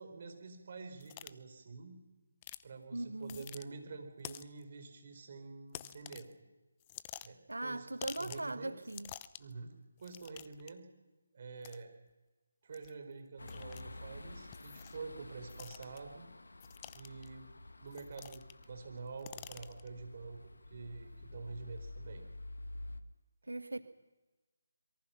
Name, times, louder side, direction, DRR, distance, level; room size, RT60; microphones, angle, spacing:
voice 1, 0.0-2.0 2.6-6.3 7.2-7.9 8.2-8.8 9.4-10.9 11.3-11.9 12.6-16.3 16.9-17.5 17.8-20.4 20.7-22.2, right 4 dB, 45° right, 6 dB, 4.6 m, -47 dB
sound 1, 1.0-1.3 2.4-2.6 3.2-3.6 4.2-4.6 5.7-6.3 6.8-7.5 8.0-8.5 8.8-9.5 10.0-10.7 11.6-11.8 12.7-12.9 13.5-13.8 14.5-15.0 15.5-16.0 16.6-17.3 17.9-18.6 19.0-19.9, left 13 dB, 25° left, 0.7 m, -49 dB
voice 2, 2.9-3.5 7.5-9.1 23.4-23.8, right 2 dB, 90° right, 14 dB, 0.9 m, -39 dB
sound 2, 13.4-23.0, left 2 dB, 80° left, 1.8 m, -50 dB
25.5 x 22.5 x 5.9 m, 1.2 s
figure-of-eight pair, 160°, 0 cm